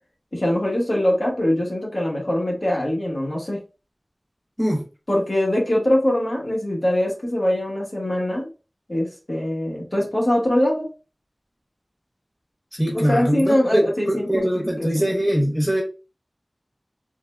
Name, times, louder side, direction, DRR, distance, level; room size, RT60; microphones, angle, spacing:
voice 1, 0.3-3.6 5.1-8.5 8.9-10.9 12.9-14.5 14.8-15.1, left 1 dB, 55° left, -2 dB, 1.1 m, -22 dB
voice 2, 12.8-15.8, equal, 5° left, -3 dB, 1.1 m, -22 dB
3.6 x 2.0 x 2.2 m, 0.32 s
wide cardioid pair, 55°, 0 cm